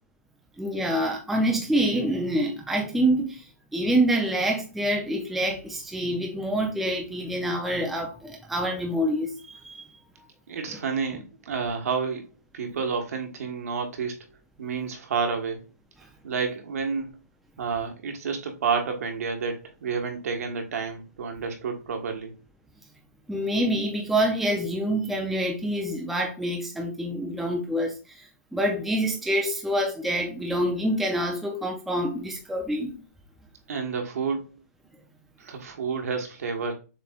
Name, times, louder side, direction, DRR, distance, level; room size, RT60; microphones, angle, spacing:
voice 1, 0.6-9.9 10.7-10.8 23.3-33.0, right 1 dB, ahead, 0.4 m, -26 dB
voice 2, 10.5-12.2 12.5-14.2 14.6-15.6 16.2-17.1 17.6-22.3 33.7-34.5 35.4-36.7, right 5 dB, 65° right, 1.3 m, -30 dB
6.8 x 3.1 x 2.4 m
hypercardioid pair, 165°, 9 cm